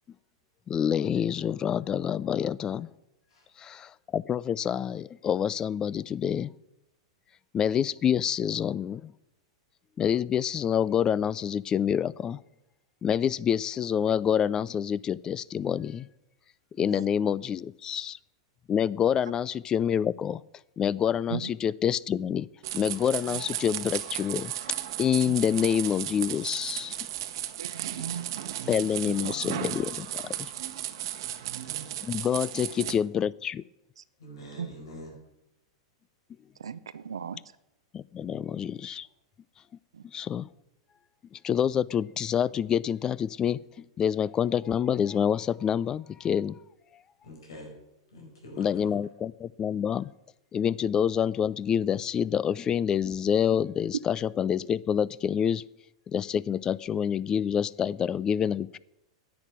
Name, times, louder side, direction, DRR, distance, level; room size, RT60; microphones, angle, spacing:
voice 1, 0.7-2.9 3.6-6.5 7.5-9.1 10.0-12.4 13.0-16.1 16.8-18.2 18.7-20.4 20.8-22.5 22.7-24.5 25.0-27.0 28.7-30.2 32.0-33.6 37.9-39.1 40.1-40.5 41.3-46.6 48.6-50.1 50.5-55.6 56.1-58.8, left 8 dB, 25° left, 0.4 m, -27 dB
sound 1, 22.6-32.9, right 12 dB, 65° right, 1.1 m, -35 dB
voice 2, 25.3-25.6 27.6-28.6 29.2-29.3 34.6-34.7 36.6-37.4, right 7 dB, 80° right, 0.6 m, -37 dB
voice 3, 32.6-33.0 34.2-35.2 38.2-38.6 47.2-47.8 48.1-49.0, equal, 75° left, 5.3 m, -46 dB
10.5 x 8.3 x 9.0 m
hypercardioid pair, 105°, 3 cm